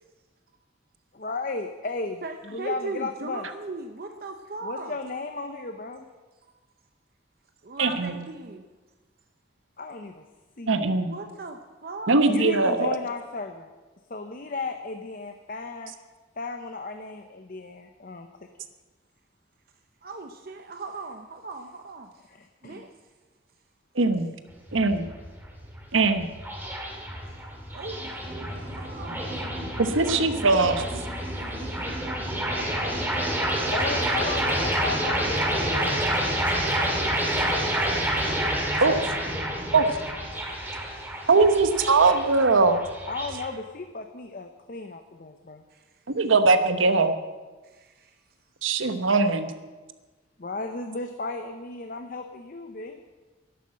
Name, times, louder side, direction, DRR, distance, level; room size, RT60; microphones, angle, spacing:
voice 1, 1.1-3.5 4.6-6.1 9.8-10.2 10.6-11.0 12.3-13.7 14.1-15.9 16.4-18.5 22.3-22.8 33.7-36.3 43.1-45.6 50.4-53.0, left 3 dB, 45° left, 6 dB, 0.8 m, -35 dB
voice 2, 2.2-5.0 7.6-8.6 11.1-12.2 20.0-22.1 22.6-22.9 27.7-29.3 30.0-30.1 32.5-33.0 45.7-45.8 47.6-48.2, right 3 dB, 50° right, 5 dB, 0.7 m, -38 dB
voice 3, 7.8-8.1 10.7-11.1 12.1-12.9 24.0-24.3 24.7-25.0 25.9-26.3 29.8-30.8 38.8-39.0 39.7-39.9 41.3-42.8 46.2-47.1 48.6-49.5, right 3 dB, 90° right, 9 dB, 1.1 m, -21 dB
sound 1, 24.5-43.5, right 1 dB, 10° right, 2.3 m, -28 dB
11.5 x 11.5 x 7.5 m, 1.3 s
head